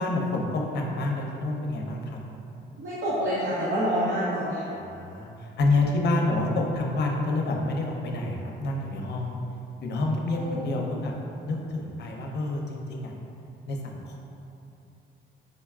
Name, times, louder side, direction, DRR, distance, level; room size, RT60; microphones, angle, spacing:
voice 1, 0.0-2.2 4.7-9.4 9.8-11.1 11.5-13.1 13.7-14.2, left 2 dB, 60° left, 0 dB, 0.5 m, -28 dB
voice 2, 2.7-4.7 10.4-10.6, equal, 65° right, -10 dB, 0.7 m, -27 dB
4.9 x 2.3 x 2.3 m, 2.8 s
cardioid pair, 90°, 20 cm